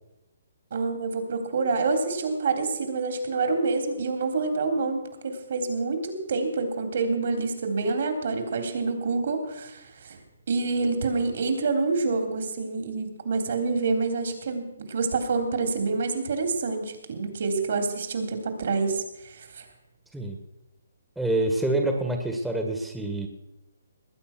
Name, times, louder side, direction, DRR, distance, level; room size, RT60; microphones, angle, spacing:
voice 1, 0.7-10.2 10.5-19.6, right 4 dB, 60° right, 6 dB, 3.6 m, -27 dB
voice 2, 21.2-23.3, right 2 dB, 5° right, 3 dB, 1.7 m, -26 dB
19.5 x 9.3 x 6.1 m, 0.90 s
hypercardioid pair, 145°, 0 cm